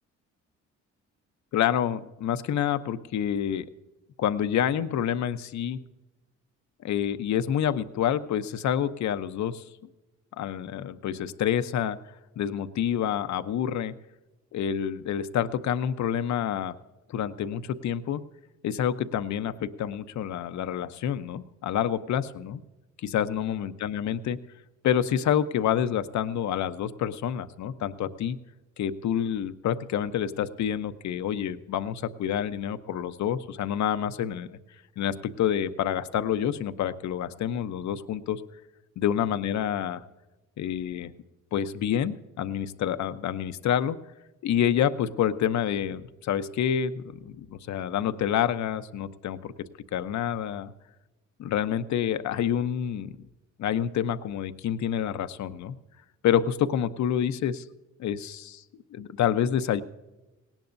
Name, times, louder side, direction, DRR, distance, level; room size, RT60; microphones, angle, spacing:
voice 1, 1.5-3.7 4.2-5.8 6.8-9.6 10.4-12.0 12.4-13.9 14.5-16.7 17.1-18.2 18.6-22.6 23.0-24.4 24.8-28.4 28.8-34.6 35.0-38.4 39.0-40.0 40.6-41.1 41.5-44.0 44.4-49.5 49.9-50.7 51.4-53.1 53.6-55.8 56.2-57.6 58.0-58.6 58.9-59.8, left 9 dB, 65° left, 11 dB, 0.8 m, -28 dB
18.5 x 18.0 x 2.7 m, 1.1 s
cardioid pair, 90°, 30 cm